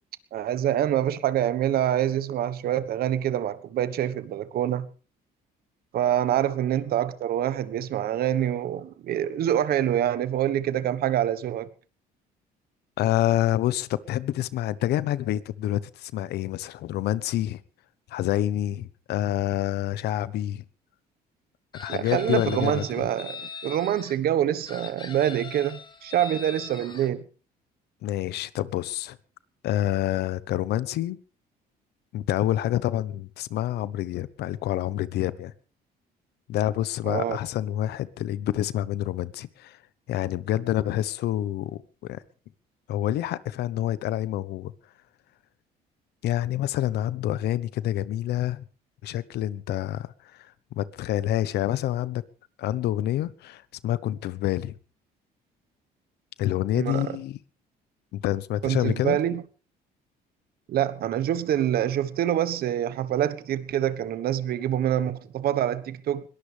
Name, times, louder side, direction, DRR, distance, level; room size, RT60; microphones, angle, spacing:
voice 1, 0.3-4.9 5.9-11.7 21.9-27.2 37.1-37.4 56.7-57.2 58.6-59.4 60.7-66.2, right 11 dB, 65° right, 1.3 m, -26 dB
voice 2, 13.0-17.6 18.1-20.6 21.7-23.1 28.0-29.2 29.6-31.2 32.1-35.5 36.5-39.8 40.1-42.2 42.9-44.7 46.2-48.6 49.0-52.2 52.6-54.7 56.4-57.4 58.1-59.2, left 13 dB, 75° left, 1.1 m, -27 dB
Chicken rooster, 21.7-24.2 24.7-27.1, left 5 dB, 25° left, 2.1 m, -41 dB
21.5 x 18.5 x 3.5 m
cardioid pair, 110°, 17 cm